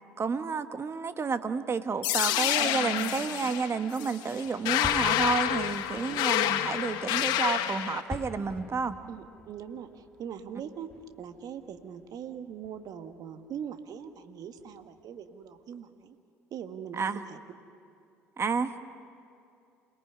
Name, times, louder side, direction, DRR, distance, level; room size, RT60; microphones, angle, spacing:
voice 1, 0.2-8.9 16.9-17.3 18.4-18.8, right 5 dB, 35° right, 10 dB, 1.5 m, -30 dB
sound 1, 2.0-8.0, left 12 dB, 65° left, 1.2 m, -28 dB
sound 2, 4.4-12.4 12.6-13.1 13.6-13.7 14.0-14.1 14.6-15.0, left 1 dB, 5° left, 2.1 m, -47 dB
voice 2, 9.1-16.2 16.5-17.4, right 8 dB, 55° right, 8 dB, 1.8 m, -41 dB
28.0 x 18.5 x 9.7 m, 2.6 s
hypercardioid pair, 60°, 8 cm